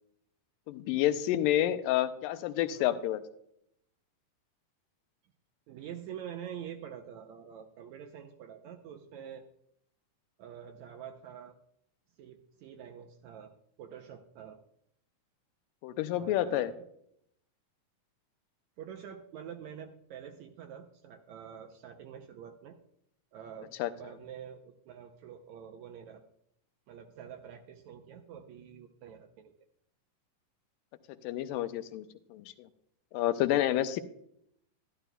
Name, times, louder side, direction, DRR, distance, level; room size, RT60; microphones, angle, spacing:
voice 1, 0.7-3.2 15.8-16.7 23.8-23.9 31.2-32.7 33.1-34.0, left 13 dB, 90° left, 10 dB, 2.3 m, -29 dB
voice 2, 5.7-9.5 10.4-11.6 12.2-13.5 13.8-14.6 16.1-16.9 18.8-22.8 23.3-26.2 26.9-29.5, right 8 dB, 75° right, 5 dB, 1.8 m, -46 dB
12.0 x 12.0 x 2.2 m, 0.71 s
omnidirectional pair, 3.9 m